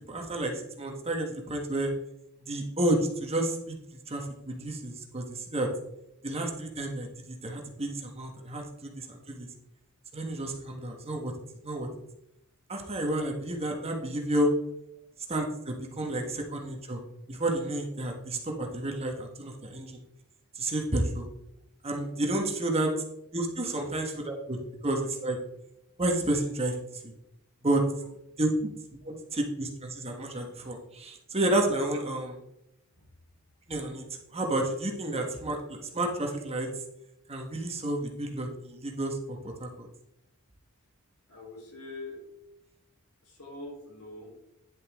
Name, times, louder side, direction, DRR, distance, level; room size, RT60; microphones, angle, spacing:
voice 1, 0.1-1.9 2.4-3.7 4.1-5.7 6.2-9.5 10.1-11.3 11.6-11.9 12.7-14.5 15.3-20.0 20.5-21.3 21.8-22.9 23.3-24.6 24.8-25.4 26.0-27.1 27.6-27.8 28.4-28.7 29.0-32.4 33.7-34.0 34.3-36.7 37.3-39.9, right 1 dB, 30° right, 2 dB, 1.4 m, -31 dB
voice 2, 41.3-42.2 43.2-44.3, left 2 dB, 80° left, -2 dB, 3.6 m, -43 dB
10.5 x 6.7 x 3.6 m, 0.83 s
head